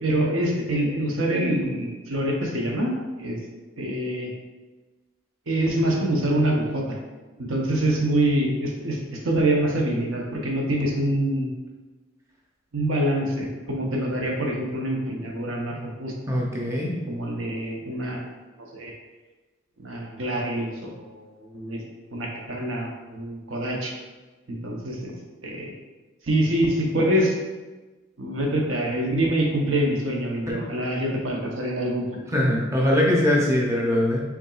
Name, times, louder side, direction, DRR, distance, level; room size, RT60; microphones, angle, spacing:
voice 1, 0.0-3.4 3.8-4.3 5.5-7.0 7.4-11.5 12.7-16.1 17.1-18.3 18.7-18.9 19.8-21.8 22.1-23.9 24.5-25.1 25.4-25.7 26.3-27.4 28.2-32.2, right 1 dB, 70° right, -1 dB, 0.8 m, -25 dB
voice 2, 16.3-16.9 30.5-30.6 32.3-34.2, left 1 dB, 15° right, -3 dB, 0.7 m, -22 dB
5.9 x 3.6 x 2.4 m, 1.2 s
head